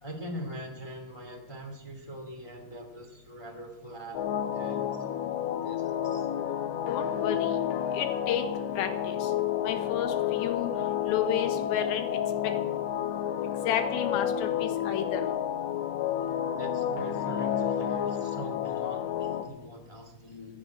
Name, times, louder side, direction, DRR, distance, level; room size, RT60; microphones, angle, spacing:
voice 1, 0.0-4.2 4.5-5.0 5.6-6.3 16.6-20.6, equal, 20° left, 2 dB, 0.7 m, -42 dB
sound 1, 4.1-19.4, left 10 dB, 85° left, 3.1 m, -30 dB
voice 2, 6.9-7.6 7.9-8.4 8.8-9.3 9.6-10.7 11.1-12.1 13.6-15.2, left 9 dB, 70° left, 6 dB, 2.9 m, -31 dB
11.5 x 11.0 x 9.6 m, 0.98 s
omnidirectional pair, 4.9 m